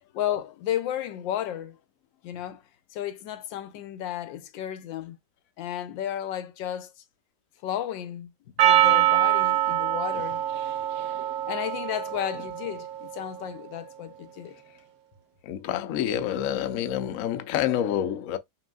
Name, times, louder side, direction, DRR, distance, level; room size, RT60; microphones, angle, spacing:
voice 1, 0.1-1.8 2.2-2.6 2.9-5.2 5.6-6.9 7.6-8.3 8.6-10.4 11.5-14.6, left 11 dB, 85° left, 1.4 m, -33 dB
Percussion, 8.6-13.1, right 12 dB, 70° right, 1.3 m, -24 dB
voice 2, 15.4-18.4, left 10 dB, 65° left, 0.8 m, -28 dB
5.6 x 2.7 x 2.3 m
omnidirectional pair, 2.0 m